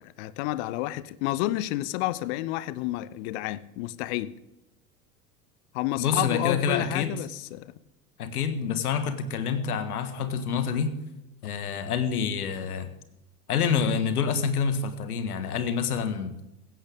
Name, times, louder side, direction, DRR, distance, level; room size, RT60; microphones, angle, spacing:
voice 1, 0.0-4.3 5.7-7.7, left 16 dB, 45° left, 0.8 m, -30 dB
voice 2, 6.0-7.1 8.2-10.9 11.4-12.9 13.5-16.3, left 6 dB, 65° left, 1.7 m, -27 dB
16.5 x 15.0 x 3.6 m
figure-of-eight pair, 80°, 47 cm